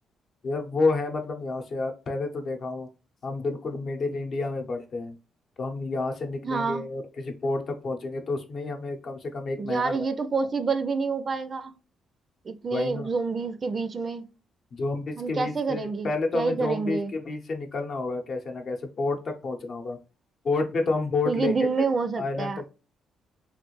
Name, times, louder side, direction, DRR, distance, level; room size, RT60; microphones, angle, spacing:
voice 1, 0.4-2.9 3.2-5.2 5.6-10.1 12.7-13.1 14.7-20.0 20.4-21.5 22.2-22.7, left 3 dB, 50° left, 0.8 m, -30 dB
voice 2, 6.4-6.8 9.6-11.7 12.5-14.2 15.2-17.1 21.3-22.7, right 4 dB, 40° right, 0.4 m, -28 dB
3.2 x 2.4 x 3.1 m
cardioid pair, 90°, 0 cm